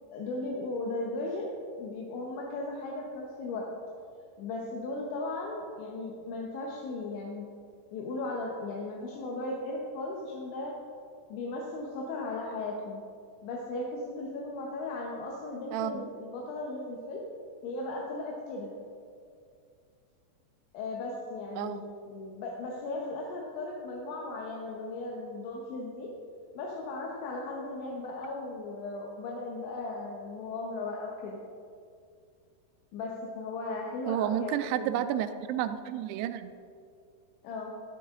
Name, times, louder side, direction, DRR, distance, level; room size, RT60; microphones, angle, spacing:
voice 1, 0.1-3.7 4.4-7.5 7.9-10.8 11.3-13.0 13.4-17.2 17.6-18.7 20.7-26.1 26.6-31.4 32.9-35.1 37.4-37.7, left 2 dB, 85° left, -2 dB, 3.4 m, -37 dB
voice 2, 15.7-16.1 21.6-21.8 34.1-36.5, right 11 dB, 85° right, 9 dB, 2.4 m, -31 dB
12.5 x 12.0 x 3.7 m, 2.3 s
omnidirectional pair, 5.2 m